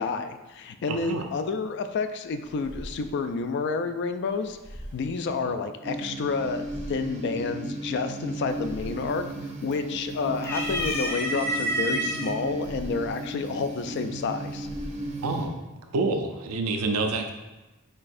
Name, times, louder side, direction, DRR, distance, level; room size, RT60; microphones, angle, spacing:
voice 1, 0.0-4.6 4.9-9.3 9.6-14.7, left 4 dB, 55° left, 9 dB, 0.3 m, -29 dB
voice 2, 0.9-1.3 5.4-5.5 15.2-15.6 15.9-17.3, right 3 dB, 85° right, 5 dB, 0.5 m, -27 dB
sound 1, 1.1-15.6, equal, 70° left, 1.3 m, -46 dB
sound 2, 5.8-15.5, right 2 dB, 30° right, 0.4 m, -35 dB
sound 3, 8.5-8.9 9.3-10.0 10.4-12.3 13.2-13.3 14.5-15.0, right 1 dB, 10° left, 0.6 m, -29 dB
4.4 x 4.2 x 2.5 m, 1.1 s
head